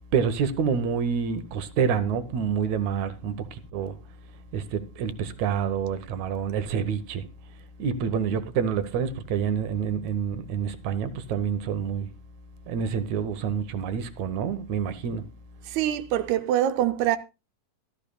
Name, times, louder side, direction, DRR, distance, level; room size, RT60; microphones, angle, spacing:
voice 1, 0.1-4.0 4.5-7.3 7.8-12.1 12.7-15.3, right 7 dB, 65° right, 2.0 m, -27 dB
voice 2, 15.7-17.2, right 12 dB, 90° right, 1.6 m, -24 dB
15.5 x 13.0 x 2.2 m
omnidirectional pair, 4.3 m